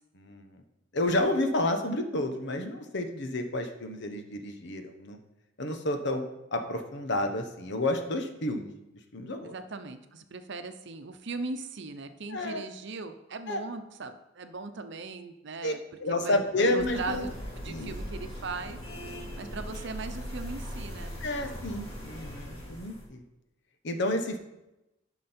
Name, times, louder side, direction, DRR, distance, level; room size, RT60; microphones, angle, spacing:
voice 1, 0.1-0.6 0.9-5.2 5.6-6.2 6.5-8.7 9.1-9.5 12.3-12.6 13.5-13.6 15.6-15.7 16.0-17.3 17.7-17.9 21.2-23.2 23.8-24.4, left 1 dB, 65° left, 6 dB, 1.1 m, -30 dB
voice 2, 9.4-15.8 16.1-17.3 17.6-18.8 19.4-21.1, right 3 dB, 65° right, 8 dB, 0.8 m, -39 dB
sound 1, 16.8-23.0, equal, 30° left, 2.4 m, -40 dB
11.5 x 6.1 x 4.4 m, 0.92 s
head